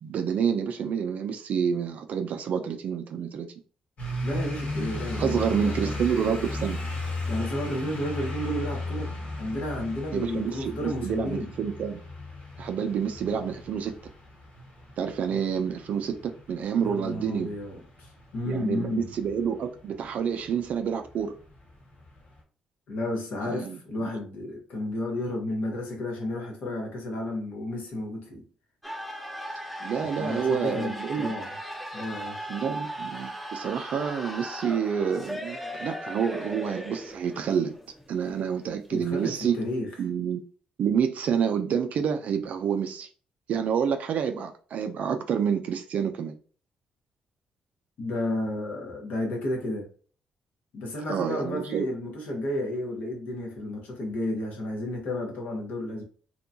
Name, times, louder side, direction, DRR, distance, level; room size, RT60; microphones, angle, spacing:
voice 1, 0.0-3.5 5.2-6.8 10.1-12.0 12.6-13.9 15.0-17.5 18.5-21.3 23.5-24.1 29.8-31.3 32.5-37.7 38.1-39.6 40.0-40.4 40.8-43.1 43.5-46.3 51.1-51.9, right 7 dB, 65° right, 0.3 m, -28 dB
sound 1, 4.0-22.4, left 2 dB, 60° left, 1.2 m, -36 dB
voice 2, 4.2-5.9 7.3-9.1 9.4-11.5 16.8-19.1 22.9-28.4 30.0-31.5 31.9-32.4 38.9-39.9 48.0-49.9 50.7-56.0, left 1 dB, 75° left, 1.0 m, -32 dB
sound 2, 28.8-39.7, equal, ahead, 0.6 m, -38 dB
2.8 x 2.2 x 2.6 m
supercardioid pair, 60°, 3 cm